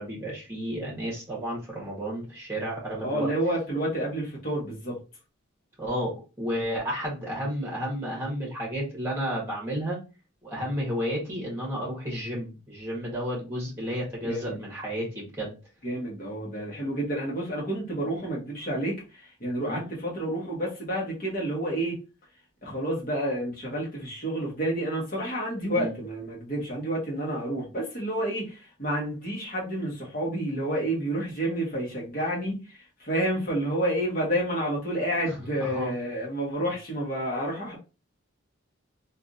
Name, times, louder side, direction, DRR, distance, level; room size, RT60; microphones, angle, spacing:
voice 1, 0.0-3.3 5.8-10.0 10.4-15.5 19.7-19.9 25.7-25.9 35.6-35.9, equal, 10° right, -3 dB, 1.5 m, -32 dB
voice 2, 3.0-5.0 14.2-14.6 15.8-22.0 22.6-37.8, right 1 dB, 40° left, -3 dB, 1.3 m, -29 dB
3.3 x 2.6 x 2.6 m, 0.31 s
head